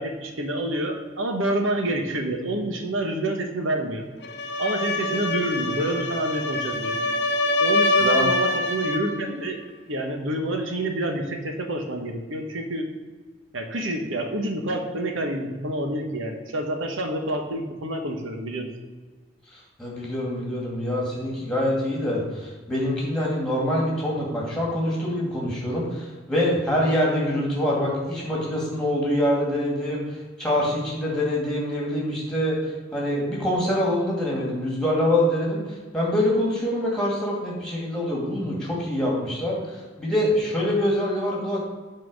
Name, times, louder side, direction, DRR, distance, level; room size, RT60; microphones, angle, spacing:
voice 1, 0.0-4.0 4.6-7.0 7.6-9.6 9.9-12.9 13.5-18.7, right 1 dB, 90° right, 4 dB, 1.3 m, -28 dB
sound 1, 4.2-9.1, left 2 dB, 55° left, 0.8 m, -24 dB
voice 2, 8.0-8.3 19.5-32.6 32.9-41.6, left 1 dB, 5° left, -4 dB, 2.3 m, -25 dB
8.5 x 4.5 x 6.3 m, 1.4 s
head